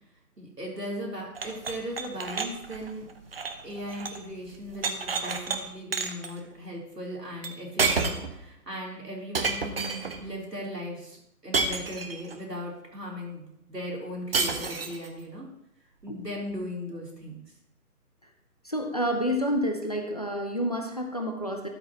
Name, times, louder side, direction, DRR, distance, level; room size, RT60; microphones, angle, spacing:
voice 1, 0.4-3.1 3.6-15.5 16.0-17.4, equal, 85° right, -3 dB, 3.7 m, -38 dB
sound 1, 1.3-4.3 4.5-5.6 5.9-6.3 7.4-7.5 7.8-8.4 9.3-10.2 11.5-12.4 14.3-15.1, right 4 dB, 40° right, 0.8 m, -30 dB
voice 2, 18.6-21.7, equal, 25° left, 3 dB, 0.6 m, -29 dB
12.5 x 8.4 x 3.0 m, 0.76 s
figure-of-eight pair, 150°, 48 cm